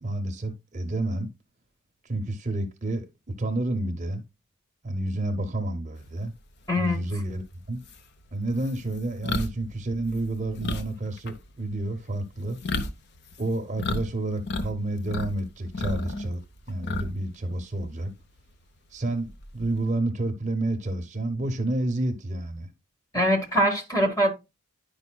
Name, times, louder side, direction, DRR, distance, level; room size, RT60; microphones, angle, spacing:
voice 1, 0.0-1.3 2.0-3.1 3.4-4.2 4.8-6.3 6.8-7.4 7.7-7.8 8.3-12.6 13.4-18.1 18.9-22.7, right 2 dB, 35° right, 0.7 m, -29 dB
voice 2, 6.7-7.0 23.1-24.3, equal, 15° left, 1.2 m, -23 dB
sound 1, 7.3-7.4 7.9-14.0 14.3-15.3 15.7-17.3 17.6-17.8 19.3-19.8, left 2 dB, 50° left, 0.6 m, -32 dB
9.8 x 5.2 x 2.2 m
head